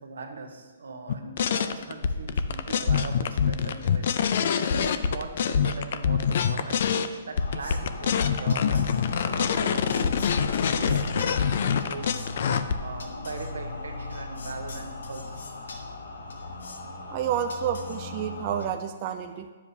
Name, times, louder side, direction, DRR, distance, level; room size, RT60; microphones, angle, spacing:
voice 1, 0.0-4.2 4.6-9.0 9.3-10.2 10.7-12.1 12.8-15.4, right 4 dB, 90° right, 4 dB, 1.0 m, -40 dB
sound 1, 1.1-7.1 7.4-12.8, left 7 dB, 55° left, 0.4 m, -25 dB
sound 2, 7.4-18.7, left 3 dB, 85° left, 1.0 m, -38 dB
voice 2, 17.1-19.5, right 9 dB, 35° right, 6 dB, 0.3 m, -29 dB
9.6 x 7.2 x 2.7 m, 1.5 s
hypercardioid pair, 155°, 0 cm